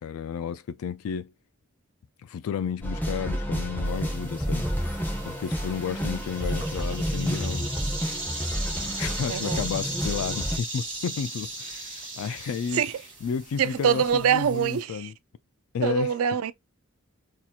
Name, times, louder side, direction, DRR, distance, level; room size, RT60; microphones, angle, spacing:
voice 1, 0.0-1.3 2.2-4.7 5.2-7.7 8.8-12.8 13.2-15.1 15.7-16.1, left 7 dB, 85° left, 0.3 m, -32 dB
sound 1, 2.8-10.6, equal, 10° left, 0.9 m, -30 dB
sound 2, 3.8-14.8, right 2 dB, 25° right, 2.2 m, -37 dB
voice 2, 9.3-9.7 12.7-12.9 13.6-15.1 15.8-16.5, right 8 dB, 80° right, 0.4 m, -24 dB
4.2 x 2.8 x 2.4 m
head